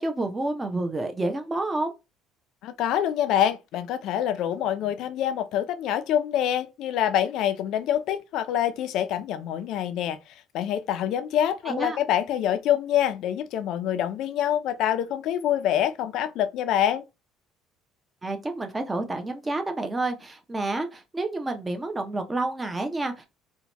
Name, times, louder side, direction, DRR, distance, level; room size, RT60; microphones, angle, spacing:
voice 1, 0.0-1.9 11.7-12.0 18.2-23.3, right 2 dB, 15° right, 0.5 m, -29 dB
voice 2, 2.6-10.2 10.5-17.0, left 10 dB, 65° left, 0.4 m, -26 dB
2.8 x 2.1 x 2.9 m
cardioid pair, 115°, 0 cm